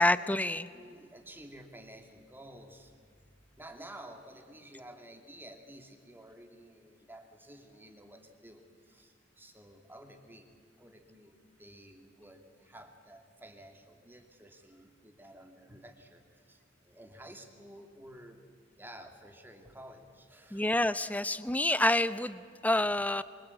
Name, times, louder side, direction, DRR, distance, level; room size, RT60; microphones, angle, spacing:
voice 1, 0.0-0.7 20.5-23.2, left 1 dB, 10° left, 14 dB, 0.8 m, -28 dB
voice 2, 0.7-3.2 3.6-10.5 10.8-18.4 18.8-20.7, right 1 dB, 10° right, 5 dB, 2.7 m, -52 dB
26.5 x 25.0 x 8.6 m, 2.2 s
head